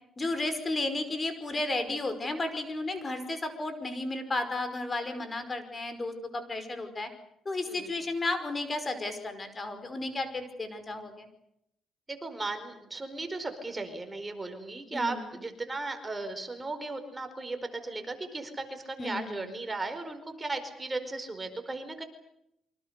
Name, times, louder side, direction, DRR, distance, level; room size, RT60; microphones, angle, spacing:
voice 1, 0.2-7.1 7.5-11.3 14.9-15.4 19.0-19.5, left 2 dB, 30° left, 9 dB, 5.3 m, -33 dB
voice 2, 12.1-22.0, right 3 dB, 20° right, 7 dB, 4.8 m, -36 dB
28.0 x 25.5 x 6.7 m, 0.80 s
cardioid pair, 90°, 0 cm